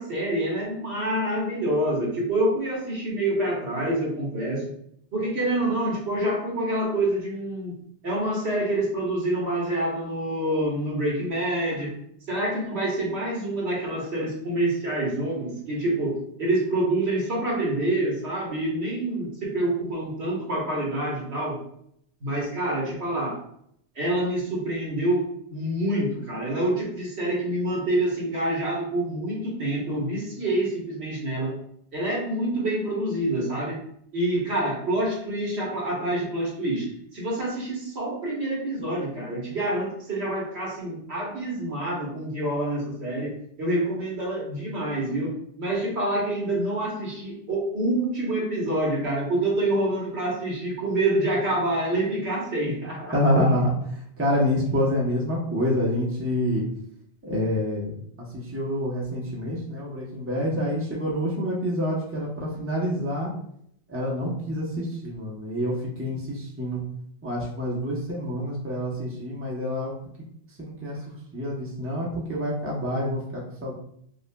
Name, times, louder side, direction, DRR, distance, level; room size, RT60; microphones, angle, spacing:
voice 1, 0.0-4.6 5.1-7.8 8.0-11.9 12.3-21.6 22.2-23.4 23.9-31.5 31.9-33.8 34.1-53.2 53.5-53.6, right 1 dB, 70° right, -4 dB, 1.5 m, -27 dB
voice 2, 53.1-53.7 54.2-56.6 57.2-57.9 58.3-63.3 63.9-66.8 67.2-69.9 70.6-71.0 71.3-73.7, equal, 15° right, -4 dB, 0.8 m, -27 dB
5.4 x 2.4 x 2.2 m, 0.69 s
omnidirectional pair, 1.1 m